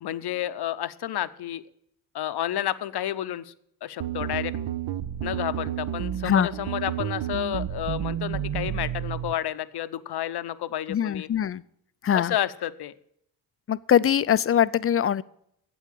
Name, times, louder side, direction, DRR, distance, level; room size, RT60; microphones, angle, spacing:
voice 1, 0.0-1.6 2.1-3.5 3.8-4.5 5.2-11.3 12.1-12.9, left 12 dB, 60° left, 13 dB, 0.7 m, -30 dB
sound 1, 4.0-9.3, right 10 dB, 55° right, 0.7 m, -31 dB
voice 2, 10.9-11.6 12.0-12.3 13.7-15.2, left 9 dB, 30° left, 18 dB, 0.4 m, -22 dB
8.3 x 7.9 x 8.4 m, 0.74 s
cardioid pair, 65°, 44 cm